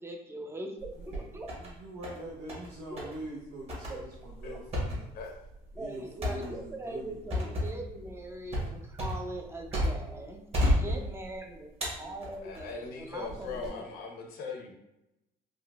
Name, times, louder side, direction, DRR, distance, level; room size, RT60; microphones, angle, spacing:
voice 1, 0.0-1.5 3.9-4.0 5.7-10.4 10.7-13.9, right 1 dB, 15° right, 3 dB, 0.5 m, -41 dB
sound 1, 0.8-1.7 2.0-2.7 3.0-3.2 3.7-10.2 10.5-11.4 11.8-12.7 13.3-13.7, left 1 dB, 35° right, 1.2 m, -32 dB
voice 2, 1.5-5.1 5.8-7.7 13.2-13.9, right 1 dB, 85° right, -5 dB, 0.7 m, -44 dB
voice 3, 12.4-14.7, left 4 dB, 65° left, 2 dB, 0.8 m, -40 dB
3.6 x 2.6 x 2.4 m, 0.89 s
cardioid pair, 110°, 17 cm